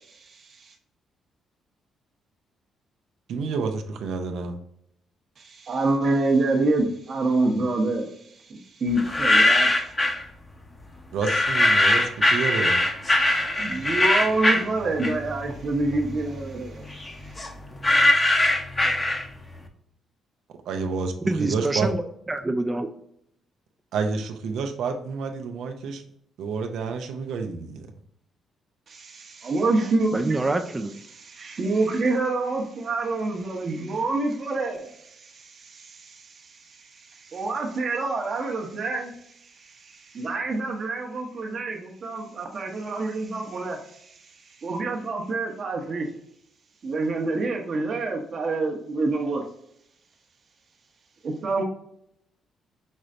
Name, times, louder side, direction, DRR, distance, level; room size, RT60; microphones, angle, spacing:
voice 1, 0.1-0.7 5.4-8.1 8.5-9.9 13.5-16.8 28.9-30.3 31.1-36.5 37.0-39.1 39.6-44.1 44.6-46.1 46.8-49.4 51.2-51.6, right 2 dB, 50° right, 0 dB, 1.0 m, -27 dB
voice 2, 3.3-4.6 11.1-12.8 20.7-21.1 21.4-21.9 23.9-26.0 26.4-27.9, right 4 dB, 80° right, 5 dB, 0.7 m, -29 dB
sound 1, 9.0-10.2 11.2-15.4 15.8-19.5, left 1 dB, 20° left, 0.8 m, -21 dB
voice 3, 21.3-22.0 22.3-22.9 30.1-31.0, right 2 dB, 20° right, 8 dB, 0.5 m, -26 dB
5.3 x 3.2 x 2.5 m, 0.72 s
cardioid pair, 90°, 0 cm